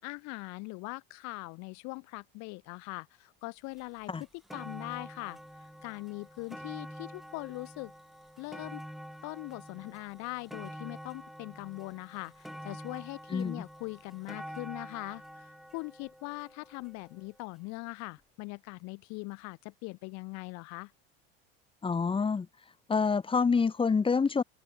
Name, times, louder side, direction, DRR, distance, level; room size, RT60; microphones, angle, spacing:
voice 1, 0.0-5.4 5.8-7.9 8.4-8.8 9.2-20.9, left 27 dB, 60° left, 5.2 m, -41 dB
sound 1, 3.8-3.9 4.2-17.4 18.2-18.3, equal, ahead, 2.7 m, -47 dB
voice 2, 13.3-13.6 21.8-22.5 22.9-24.4, left 5 dB, 15° left, 2.1 m, -27 dB
supercardioid pair, 125°, 30 cm